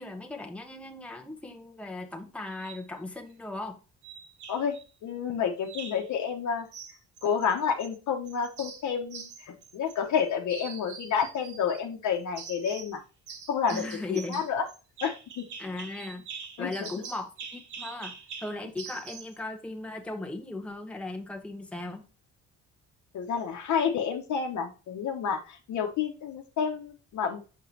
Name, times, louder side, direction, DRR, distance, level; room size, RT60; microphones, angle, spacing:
voice 1, 0.0-3.8 13.7-14.4 15.6-16.2 16.6-22.0, left 2 dB, 5° left, 1.0 m, -37 dB
sound 1, 2.5-2.9 4.0-4.8 5.7-6.1 6.7-7.9 8.3-10.2 10.5-11.8 12.4-13.0 13.3-19.4, right 6 dB, 75° right, 1.3 m, -44 dB
voice 2, 5.0-6.7 7.2-13.0 13.5-13.8 14.1-14.6 15.0-15.4 16.6-16.9 23.1-27.4, left 7 dB, 75° left, 1.1 m, -30 dB
6.6 x 5.2 x 2.8 m
cardioid pair, 90°, 30 cm